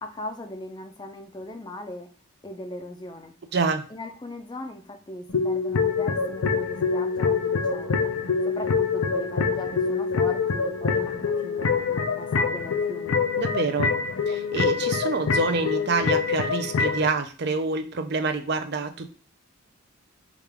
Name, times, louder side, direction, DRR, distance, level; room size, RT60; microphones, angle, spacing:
voice 1, 0.0-2.1 2.4-3.3 3.9-8.1 8.5-13.2, left 1 dB, 20° left, 6 dB, 0.5 m, -39 dB
voice 2, 3.5-3.9 13.4-13.9 14.3-19.1, right 4 dB, 50° right, 8 dB, 0.5 m, -27 dB
sound 1, 5.3-17.1, left 5 dB, 80° left, 0.5 m, -25 dB
4.9 x 2.4 x 3.4 m, 0.37 s
head